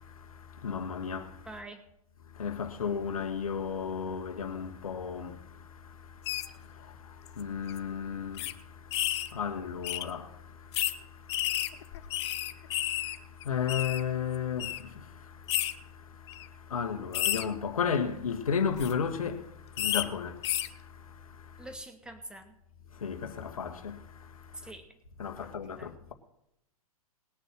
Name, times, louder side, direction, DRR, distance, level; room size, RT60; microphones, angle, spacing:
voice 1, 0.0-1.5 2.3-21.7 22.9-24.7 25.2-26.1, left 7 dB, 65° left, 1.8 m, -35 dB
voice 2, 1.5-1.8 21.6-22.5 24.6-24.9 25.4-25.9, right 1 dB, 5° right, 1.9 m, -45 dB
sound 1, 6.2-6.5 7.3-7.4 7.7-7.8 8.4-8.5 8.9-9.3 9.8-10.0 10.7-10.9 11.3-13.2 13.4-14.0 14.6-14.8 15.5-15.7 16.3-16.5 17.1-17.4 18.6-18.9 19.8-20.0 20.4-20.7, left 13 dB, 45° left, 0.9 m, -31 dB
20.0 x 6.9 x 6.4 m
figure-of-eight pair, 110°, 19 cm